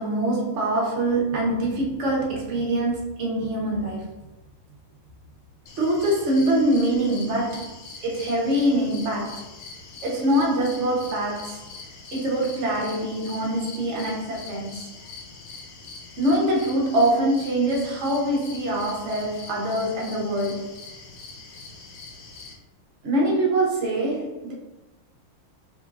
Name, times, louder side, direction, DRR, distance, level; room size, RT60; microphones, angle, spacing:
voice 1, 0.0-4.1 5.8-7.7 8.0-9.4 10.0-11.6 12.1-14.9 16.2-20.7 23.0-24.5, right 1 dB, 55° right, 0.8 m, -24 dB
sound 1, 5.7-22.5, left 3 dB, 85° left, 1.7 m, -42 dB
5.0 x 3.2 x 2.5 m
omnidirectional pair, 2.3 m